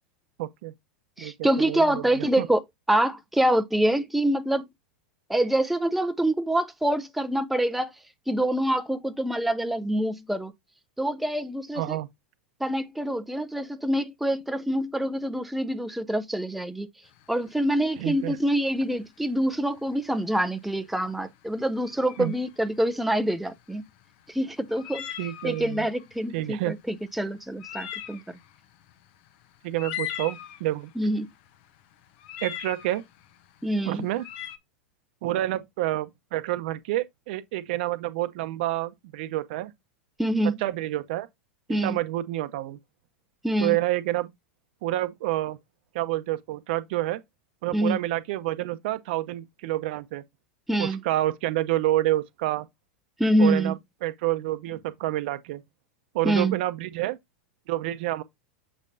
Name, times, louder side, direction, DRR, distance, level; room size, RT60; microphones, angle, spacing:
voice 1, 0.4-0.7 1.2-2.5 11.8-12.1 18.0-18.4 22.2-22.3 25.2-25.8 26.3-26.7 29.6-30.9 32.4-33.0 33.8-34.2 35.2-39.7 40.6-41.3 41.8-42.8 43.6-44.3 44.8-45.6 45.9-47.2 47.6-50.2 50.8-52.7 53.4-53.8 54.0-55.6 56.1-57.2 57.7-58.2, right 15 dB, 60° right, 0.8 m, -28 dB
voice 2, 1.2-2.6 2.9-4.6 5.3-7.9 8.3-10.5 11.0-12.0 12.6-16.9 17.3-23.8 24.3-25.1 25.4-28.4 31.0-31.3 33.6-34.1 40.2-40.5 41.7-42.0 43.4-43.8 47.7-48.0 50.7-51.0 53.2-53.7 56.2-56.6, right 1 dB, ahead, 0.6 m, -25 dB
sound 1, 17.1-34.6, left 11 dB, 55° left, 0.9 m, -41 dB
7.2 x 5.5 x 2.7 m
hypercardioid pair, 95°, 6 cm